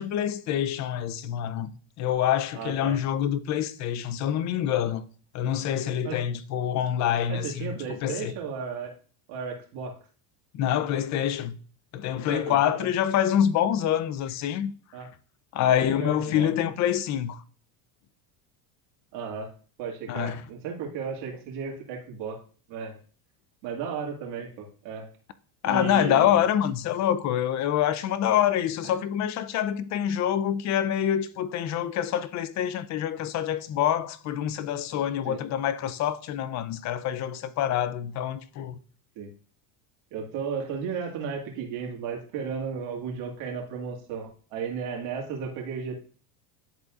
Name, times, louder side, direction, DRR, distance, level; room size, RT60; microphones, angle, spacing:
voice 1, 0.0-1.7 2.0-5.0 5.3-8.3 10.5-11.6 11.9-14.7 15.5-17.4 20.1-20.4 25.6-38.8, left 10 dB, 35° left, 0.5 m, -26 dB
voice 2, 2.6-3.0 6.0-6.2 7.3-8.9 9.3-9.9 12.3-12.9 14.9-15.1 15.7-16.5 19.1-19.5 19.8-22.4 22.7-23.0 23.6-25.1 25.7-26.4 28.8-28.9 35.2-35.4 39.2-39.3 40.1-45.9, right 6 dB, 65° right, 2.1 m, -34 dB
11.0 x 4.0 x 2.4 m
supercardioid pair, 115°, 50 cm